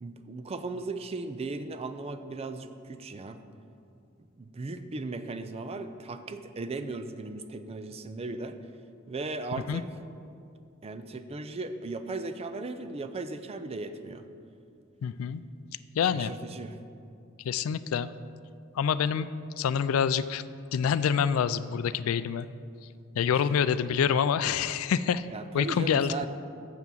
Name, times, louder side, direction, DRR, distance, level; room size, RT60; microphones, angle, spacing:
voice 1, 0.0-3.4 4.4-8.6 9.1-9.9 10.8-14.3 16.0-16.8 23.3-23.6 25.3-26.3, right 3 dB, 30° right, 9 dB, 0.4 m, -37 dB
voice 2, 15.0-15.4 16.0-16.3 17.4-18.1 18.8-19.3 19.6-20.4 20.7-22.5 23.2-25.3 25.5-26.1, left 7 dB, 80° left, 15 dB, 0.3 m, -26 dB
7.0 x 6.0 x 7.3 m, 2.5 s
head